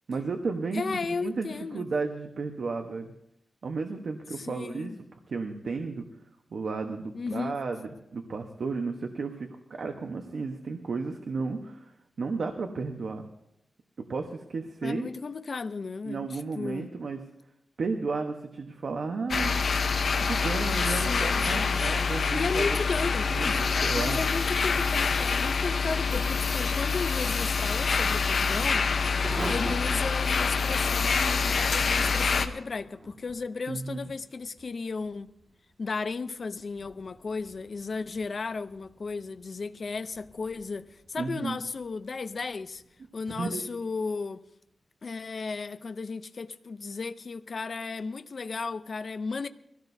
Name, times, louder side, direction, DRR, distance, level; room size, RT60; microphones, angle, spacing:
voice 1, 0.1-1.5 1.7-3.1 3.6-4.9 5.3-6.0 6.5-11.9 12.2-13.3 14.0-15.1 16.0-17.2 17.8-19.5 20.2-22.7 23.3-24.2 33.7-34.1 41.2-41.6 43.3-43.7, right 4 dB, 65° right, 1.1 m, -33 dB
voice 2, 0.7-1.9 4.3-5.0 7.1-7.6 14.8-16.9 20.9-21.7 22.3-28.9 29.5-35.3 35.8-42.8 43.1-44.4 45.0-49.5, left 4 dB, 50° left, 0.6 m, -34 dB
sound 1, 19.3-32.5, left 5 dB, 65° left, 0.9 m, -26 dB
Thunder / Rain, 27.8-44.5, right 2 dB, 45° right, 1.9 m, -46 dB
22.5 x 16.5 x 2.7 m
wide cardioid pair, 125°, 0 cm